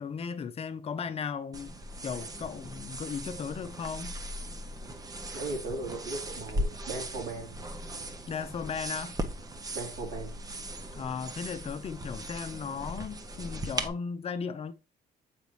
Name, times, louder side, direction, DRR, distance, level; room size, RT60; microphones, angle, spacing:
voice 1, 0.0-1.7 2.0-4.1 8.3-9.2 10.9-14.7, left 6 dB, 35° left, 0.6 m, -36 dB
sound 1, 1.5-13.9, right 1 dB, 20° right, 0.8 m, -38 dB
voice 2, 5.3-7.6 9.7-10.3, right 3 dB, 85° right, 3.4 m, -37 dB
6.9 x 5.1 x 3.1 m
cardioid pair, 110°, 17 cm